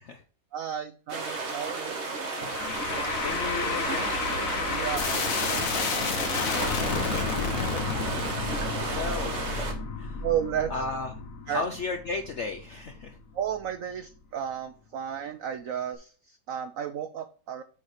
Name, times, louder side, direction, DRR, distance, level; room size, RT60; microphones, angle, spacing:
voice 1, 0.5-2.0 4.7-5.0 5.4-7.0 10.2-10.7 11.5-11.6 13.3-17.6, right 9 dB, 85° right, 10 dB, 0.7 m, -33 dB
sound 1, 1.1-9.7, right 3 dB, 40° right, 1.4 m, -33 dB
sound 2, 2.4-13.7, left 5 dB, 50° left, 1.2 m, -31 dB
voice 2, 2.6-4.1 4.6-4.8 7.1-7.8 8.8-10.2 10.7-11.1 11.5-13.2, left 3 dB, 70° left, 5 dB, 0.6 m, -35 dB
7.2 x 4.2 x 4.9 m, 0.41 s
omnidirectional pair, 2.1 m